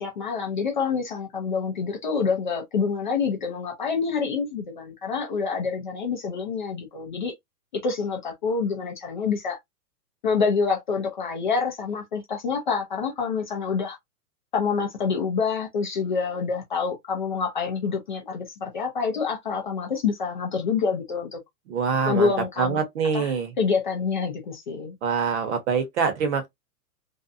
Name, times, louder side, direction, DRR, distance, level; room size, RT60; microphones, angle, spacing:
voice 1, 0.0-7.3 7.7-9.6 10.2-14.0 14.5-21.4 22.1-22.8 23.1-25.0, left 5 dB, 35° left, 0.4 m, -27 dB
voice 2, 21.7-22.3 22.6-23.5 25.0-26.5, right 6 dB, 50° right, 1.0 m, -24 dB
2.6 x 2.1 x 2.5 m
hypercardioid pair, 160°, 46 cm